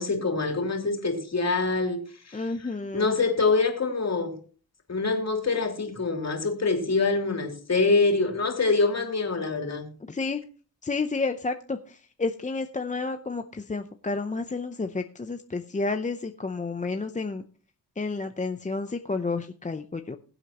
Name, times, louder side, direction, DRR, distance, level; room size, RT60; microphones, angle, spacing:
voice 1, 0.0-2.5 2.9-4.4 4.9-9.9, left 3 dB, 45° left, 3 dB, 3.1 m, -25 dB
voice 2, 2.3-3.2 10.1-10.4 10.8-17.4 18.0-20.2, left 3 dB, 20° left, 7 dB, 0.6 m, -30 dB
21.5 x 8.0 x 2.9 m, 0.40 s
wide cardioid pair, 120°, 37 cm